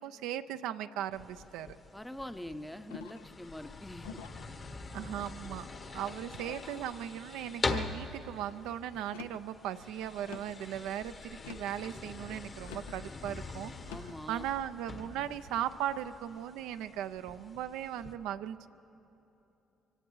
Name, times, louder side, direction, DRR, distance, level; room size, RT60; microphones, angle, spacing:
voice 1, 0.0-1.8 4.9-5.7 5.9-13.7 14.0-18.7, right 11 dB, 80° right, 10 dB, 0.4 m, -38 dB
sound 1, 1.1-18.1, left 3 dB, 40° left, 1.2 m, -43 dB
voice 2, 1.9-4.2 13.9-14.4, left 1 dB, 10° left, 10 dB, 0.7 m, -44 dB
sound 2, 2.9-3.4 4.0-4.5 5.1-5.7 6.4-6.8 7.4-7.9 9.0-9.5 10.2-10.6 11.4-11.8 12.6-13.0 13.8-14.2, left 8 dB, 90° left, 0.4 m, -48 dB
23.5 x 17.5 x 3.1 m, 3.0 s
hypercardioid pair, 55°, 0 cm